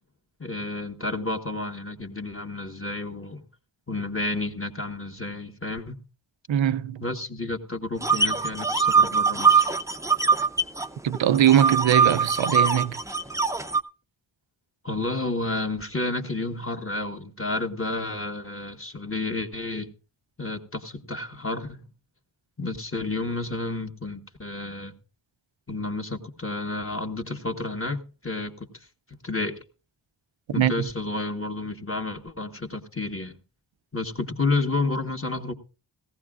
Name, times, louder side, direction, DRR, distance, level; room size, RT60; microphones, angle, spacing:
voice 1, 0.4-3.4 3.9-6.0 7.0-9.8 14.8-19.9 20.4-21.9 22.6-25.0 25.7-28.7 29.1-29.6 30.5-33.4 33.9-35.5, left 2 dB, 30° left, 1.6 m, -31 dB
voice 2, 6.5-7.0 11.0-13.0 30.6-30.9, right 11 dB, 85° right, 0.7 m, -21 dB
sound 1, 8.0-10.9 11.1-13.8, right 5 dB, 5° right, 0.6 m, -22 dB
18.0 x 15.5 x 2.4 m
wide cardioid pair, 75°, 44 cm